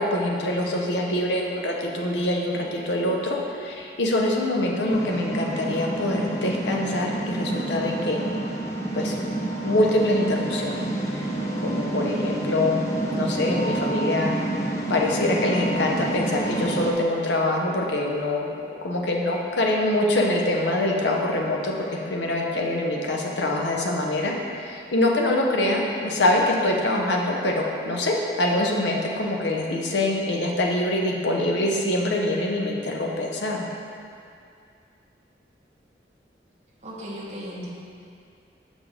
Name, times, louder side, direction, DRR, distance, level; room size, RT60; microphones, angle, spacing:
voice 1, 0.0-8.2 9.0-9.2 9.6-10.7 11.6-12.8 13.1-33.7, left 1 dB, 85° left, 0 dB, 0.8 m, -24 dB
sound 1, 4.9-16.9, right 1 dB, 15° left, 0.6 m, -28 dB
voice 2, 36.8-37.7, equal, 40° right, -8 dB, 1.0 m, -36 dB
6.5 x 5.1 x 3.6 m, 2.4 s
head